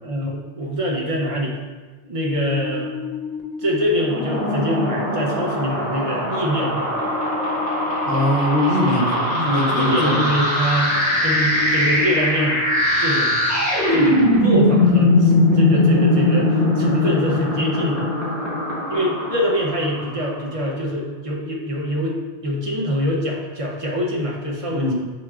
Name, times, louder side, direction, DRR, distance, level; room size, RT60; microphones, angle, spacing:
voice 1, 0.0-1.6 2.0-2.9 3.6-7.0 8.9-9.2 9.7-11.0 11.2-12.6 13.0-13.6 13.9-18.0 18.9-22.2 22.4-24.9, equal, 40° right, -2 dB, 0.6 m, -24 dB
sound 1, 2.5-3.8 6.9-8.3 11.4-12.8 15.9-17.3, left 6 dB, 50° left, 0.6 m, -31 dB
sound 2, 3.9-20.3, left 1 dB, 15° right, 1.0 m, -20 dB
voice 2, 8.1-10.2 24.7-24.9, left 1 dB, 80° right, -5 dB, 1.1 m, -21 dB
6.1 x 2.9 x 2.3 m, 1.3 s
omnidirectional pair, 1.0 m